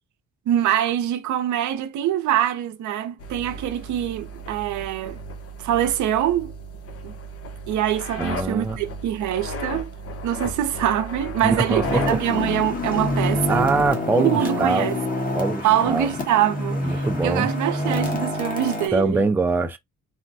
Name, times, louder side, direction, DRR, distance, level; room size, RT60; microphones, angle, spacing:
voice 1, 0.5-5.2 5.6-6.5 7.0-7.2 7.7-9.9 10.2-13.7 14.1-15.0 15.6-19.3, right 11 dB, 75° right, 0.6 m, -24 dB
sound 1, 3.2-13.9, equal, 50° left, 0.8 m, -35 dB
voice 2, 8.2-8.8 11.4-12.2 13.5-14.9 15.3-16.1 16.8-17.5 18.9-19.8, right 3 dB, 5° right, 0.4 m, -23 dB
sound 2, 11.8-18.9, left 1 dB, 30° left, 1.2 m, -26 dB
3.4 x 2.1 x 2.6 m
cardioid pair, 90°, 30 cm